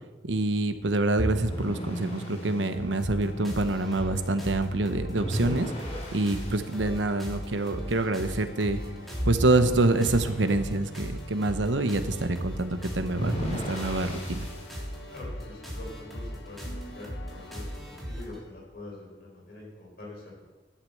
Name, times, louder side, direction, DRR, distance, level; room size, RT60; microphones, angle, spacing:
voice 1, 0.2-5.7 6.1-8.8 9.2-14.5, right 2 dB, 85° right, 9 dB, 1.0 m, -26 dB
sound 1, 1.2-2.6 5.2-6.7 9.2-10.5 13.2-14.7, equal, 35° left, 3.3 m, -34 dB
sound 2, 1.7-18.4, left 1 dB, 70° left, 1.1 m, -46 dB
sound 3, 3.0-18.4, equal, ahead, 3.0 m, -38 dB
voice 2, 15.1-20.5, left 2 dB, 55° left, -4 dB, 4.5 m, -45 dB
11.5 x 8.7 x 7.9 m, 1.2 s
head